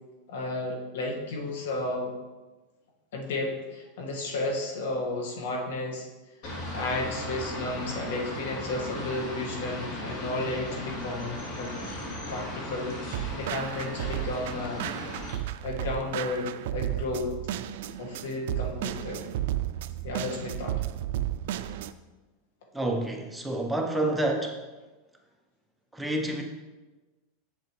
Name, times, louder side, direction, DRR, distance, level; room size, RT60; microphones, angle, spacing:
voice 1, 0.3-2.1 3.1-6.1 6.5-11.7 12.3-14.9 15.6-17.4 18.0-19.3 20.0-20.8, left 2 dB, 80° left, 1 dB, 1.6 m, -33 dB
sound 1, 6.4-15.3, left 1 dB, 55° left, 2.6 m, -37 dB
sound 2, 13.1-21.9, right 12 dB, 70° right, 0.3 m, -33 dB
voice 2, 22.7-24.6 25.9-26.4, right 1 dB, 5° right, 2 dB, 0.8 m, -28 dB
7.6 x 7.4 x 3.1 m, 1.2 s
supercardioid pair, 140°, 0 cm